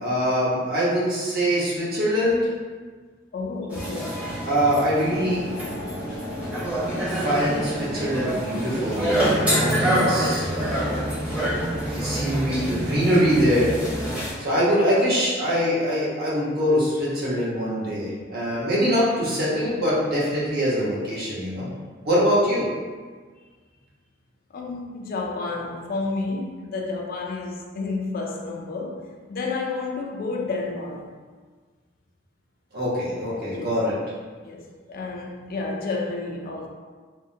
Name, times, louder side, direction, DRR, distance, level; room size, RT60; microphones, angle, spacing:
voice 1, 0.0-2.4 4.4-5.4 7.1-10.9 11.9-13.9 14.4-21.7 22.0-22.7 32.7-33.9, equal, 50° right, 1.0 m, -23 dB
voice 2, 3.3-4.2 24.5-31.2 33.5-33.8 34.4-36.7, left 3 dB, 45° left, 0.3 m, -31 dB
sound 1, 3.7-14.3, equal, 5° right, 0.7 m, -27 dB
sound 2, 5.1-14.1, right 1 dB, 75° right, 1.3 m, -33 dB
3.4 x 2.1 x 2.6 m
head